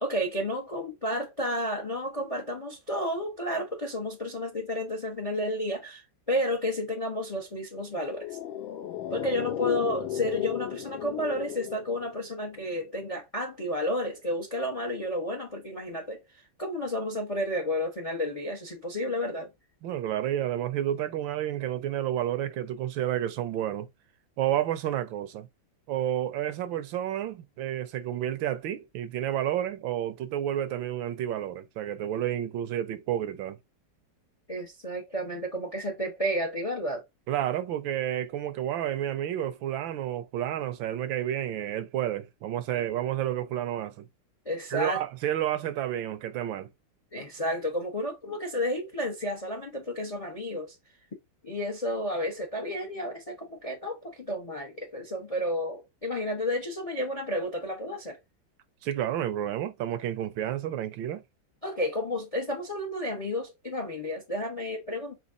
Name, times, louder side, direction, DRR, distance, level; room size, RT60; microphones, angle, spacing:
voice 1, 0.0-8.4 9.1-16.2 16.6-19.5 34.5-37.0 42.7-42.8 44.4-45.0 47.1-50.8 51.4-58.2 61.6-65.2, equal, 55° left, 0.3 m, -31 dB
sound 1, 8.0-12.6 12.8-12.9, left 10 dB, 75° left, 1.5 m, -34 dB
voice 2, 19.8-23.9 24.4-25.5 25.9-33.6 37.3-44.1 44.7-46.7 58.8-61.2, right 11 dB, 75° right, 1.3 m, -30 dB
4.4 x 4.1 x 2.5 m
omnidirectional pair, 2.3 m